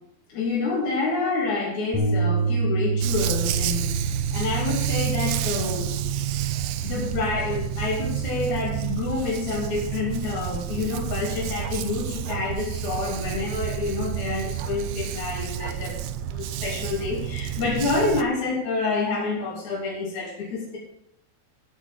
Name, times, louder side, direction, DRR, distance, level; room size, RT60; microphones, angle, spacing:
voice 1, 0.3-3.9 4.3-6.0 6.8-16.0 16.3-20.8, left 3 dB, 65° left, -4 dB, 4.1 m, -28 dB
sound 1, 1.9-8.2, right 4 dB, 10° right, 3.4 m, -28 dB
Dog, 3.0-18.2, right 11 dB, 90° right, 1.5 m, -30 dB
9.4 x 8.8 x 7.4 m, 0.78 s
omnidirectional pair, 3.7 m